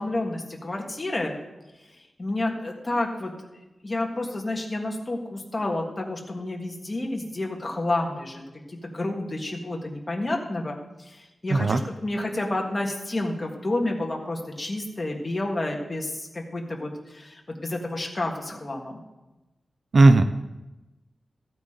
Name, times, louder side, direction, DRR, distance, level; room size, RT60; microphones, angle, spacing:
voice 1, 0.0-1.4 2.2-3.3 3.8-8.4 8.7-19.0 20.0-20.1, left 2 dB, 25° left, 0 dB, 1.7 m, -30 dB
voice 2, 19.9-20.3, right 2 dB, 50° right, 10 dB, 0.5 m, -15 dB
15.0 x 8.8 x 3.8 m, 1.0 s
wide cardioid pair, 145°, 0 cm